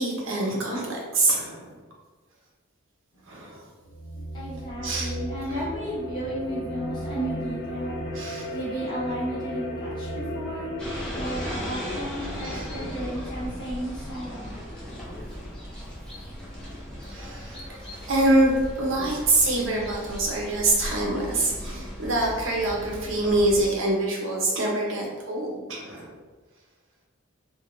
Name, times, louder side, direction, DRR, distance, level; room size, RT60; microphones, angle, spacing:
voice 1, 0.0-1.7 3.3-3.6 4.8-5.1 8.1-8.5 12.4-12.7 15.1-15.4 16.6-16.8 17.1-17.8 18.1-26.1, right 2 dB, 65° right, -2 dB, 0.7 m, -25 dB
sound 1, 3.8-10.8, equal, 50° left, 0.5 m, -34 dB
voice 2, 4.3-8.0 8.5-10.7 11.1-14.5, right 1 dB, 20° left, -11 dB, 1.3 m, -33 dB
sound 2, 10.8-23.7, equal, 5° left, 0.5 m, -37 dB
2.4 x 2.2 x 3.0 m, 1.3 s
head